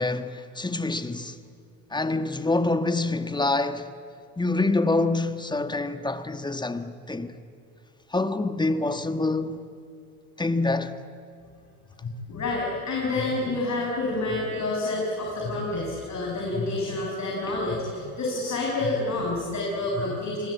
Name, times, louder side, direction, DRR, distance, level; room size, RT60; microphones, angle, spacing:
voice 1, 0.0-1.4 1.9-3.9 4.4-7.3 8.1-9.7 10.4-11.0 17.5-17.6, left 2 dB, 10° left, 1.6 m, -26 dB
voice 2, 12.0-20.5, left 2 dB, 35° left, 6.7 m, -28 dB
29.5 x 20.5 x 8.6 m
hypercardioid pair, 80°, 46 cm